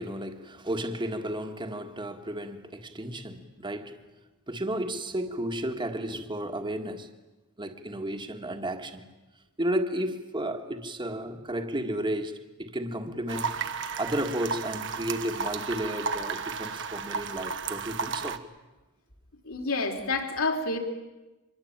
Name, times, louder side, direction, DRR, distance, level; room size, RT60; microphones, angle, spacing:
voice 1, 0.0-4.0 4.5-7.1 7.6-9.0 9.6-13.5 14.0-18.4, right 1 dB, 20° right, 1.8 m, -33 dB
sound 1, 13.3-18.4, right 5 dB, 60° right, 1.3 m, -33 dB
voice 2, 19.5-20.8, left 3 dB, 70° left, 4.1 m, -28 dB
25.5 x 22.5 x 8.9 m
head